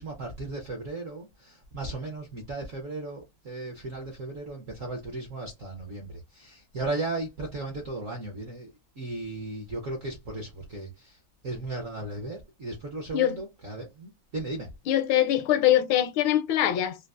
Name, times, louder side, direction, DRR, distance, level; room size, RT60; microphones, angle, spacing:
voice 1, 0.0-11.2 11.4-14.7, right 2 dB, 65° right, 0.8 m, -36 dB
voice 2, 14.9-17.0, left 12 dB, 80° left, 1.3 m, -23 dB
3.9 x 2.4 x 2.3 m
omnidirectional pair, 2.3 m